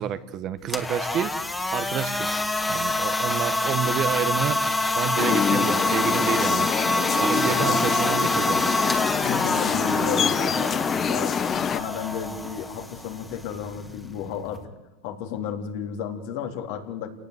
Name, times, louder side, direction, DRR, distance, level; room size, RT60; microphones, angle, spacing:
voice 1, 0.0-1.3 1.7-2.4 2.7-6.7 7.2-8.7, right 9 dB, 45° right, 12 dB, 1.6 m, -29 dB
sound 1, 0.6-14.6, left 2 dB, 10° left, 2.4 m, -27 dB
sound 2, 5.2-11.8, left 7 dB, 30° left, 1.2 m, -26 dB
sound 3, 7.0-11.3, right 1 dB, 5° right, 1.3 m, -33 dB
voice 2, 7.3-7.9 9.2-10.8 11.1-14.6 15.0-17.1, left 8 dB, 70° left, 3 dB, 3.8 m, -33 dB
28.5 x 18.5 x 8.4 m, 1.1 s
supercardioid pair, 115°, 0 cm